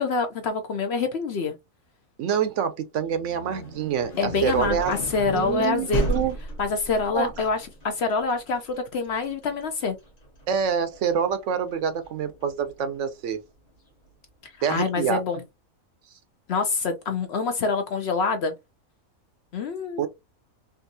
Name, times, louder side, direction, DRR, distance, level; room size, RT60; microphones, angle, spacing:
voice 1, 0.0-1.5 4.2-6.1 6.6-10.0 14.4-15.4 16.5-18.5 19.5-20.1, left 4 dB, 60° left, 0.7 m, -26 dB
voice 2, 2.2-4.9 5.3-6.4 7.1-7.3 10.5-13.4 14.6-15.2 20.0-20.1, right 7 dB, 70° right, 0.8 m, -26 dB
sound 1, 3.0-12.8, right 1 dB, 35° left, 1.0 m, -34 dB
3.4 x 2.6 x 2.6 m
omnidirectional pair, 1.4 m